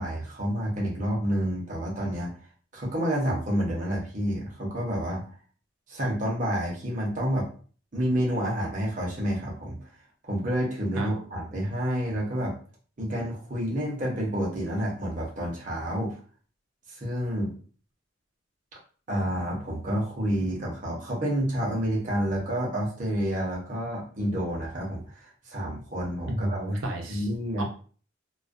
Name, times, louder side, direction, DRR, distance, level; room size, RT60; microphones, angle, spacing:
voice 1, 0.0-2.4 2.7-5.2 5.9-7.5 7.9-9.8 10.2-12.5 13.0-16.2 16.9-17.5 19.1-26.6 27.1-27.6, equal, 40° right, -3 dB, 0.7 m, -29 dB
voice 2, 26.3-27.3 27.6-27.7, right 1 dB, 80° right, 1 dB, 0.6 m, -30 dB
2.3 x 2.2 x 2.5 m, 0.41 s
head